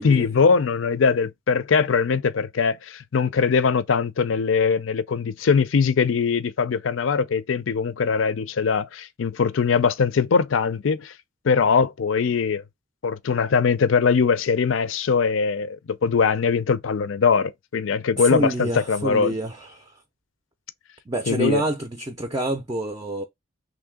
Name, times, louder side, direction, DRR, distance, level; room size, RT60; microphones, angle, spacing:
voice 1, 0.0-11.1 11.4-12.6 13.0-19.3 21.3-21.6, left 5 dB, 75° left, 0.5 m, -21 dB
voice 2, 18.2-20.0 21.1-23.2, right 1 dB, 20° right, 0.4 m, -27 dB
3.1 x 2.7 x 3.5 m
head